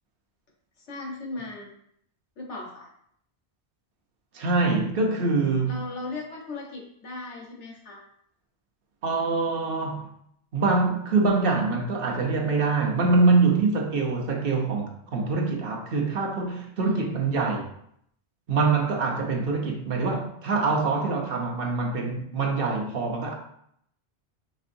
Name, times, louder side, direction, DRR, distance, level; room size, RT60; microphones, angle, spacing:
voice 1, 0.8-1.7 2.4-2.9 5.7-8.0 16.8-17.0, left 2 dB, 90° left, 1.4 m, -37 dB
voice 2, 4.3-5.8 9.0-10.1 10.5-17.7 18.5-23.3, right 3 dB, 60° right, 0.9 m, -24 dB
5.3 x 3.4 x 2.6 m
omnidirectional pair, 1.2 m